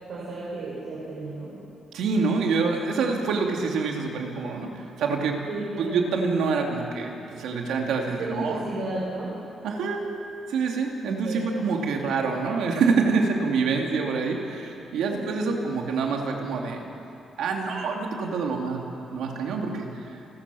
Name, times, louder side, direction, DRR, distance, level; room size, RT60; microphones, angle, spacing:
voice 1, 0.1-1.6 5.5-6.0 8.0-9.4 11.0-11.5 15.1-15.7, right 2 dB, 70° right, -6 dB, 5.1 m, -34 dB
voice 2, 1.9-5.4 5.8-8.7 9.6-10.0 10.5-16.9 17.4-18.8 19.1-20.2, right 4 dB, 90° right, 1 dB, 3.0 m, -26 dB
29.5 x 13.5 x 7.2 m, 3.0 s
cardioid pair, 180°, 0 cm